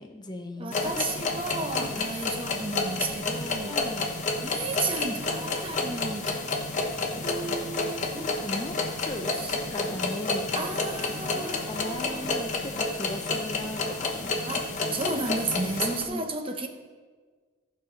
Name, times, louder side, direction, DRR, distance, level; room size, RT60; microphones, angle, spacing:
voice 1, 0.0-1.0 1.8-2.0 3.7-4.1 8.1-9.3 9.6-14.6 15.8-16.3, left 1 dB, 20° left, 4 dB, 0.6 m, -38 dB
voice 2, 0.6-6.3 7.2-8.3 9.2-9.5 10.6-12.4 14.5-16.7, right 3 dB, 25° right, 6 dB, 0.7 m, -34 dB
sound 1, 0.7-16.0, left 3 dB, 35° left, 1.0 m, -30 dB
14.0 x 5.6 x 5.1 m, 1.5 s
head